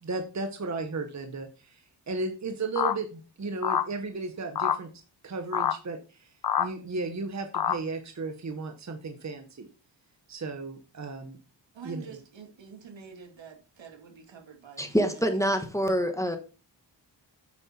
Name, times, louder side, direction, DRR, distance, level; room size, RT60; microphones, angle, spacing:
voice 1, 0.0-4.9 5.2-9.7 10.3-11.4 11.8-12.2, right 3 dB, 40° right, 1.2 m, -35 dB
sound 1, 2.8-2.9 3.6-3.9 4.6-4.8 5.5-5.7 6.4-6.7 7.5-7.8, left 8 dB, 55° left, 0.8 m, -25 dB
voice 2, 11.7-15.3, right 6 dB, 80° right, 2.4 m, -47 dB
voice 3, 14.8-16.4, equal, 5° left, 1.4 m, -26 dB
8.9 x 7.7 x 4.4 m
wide cardioid pair, 135°, 44 cm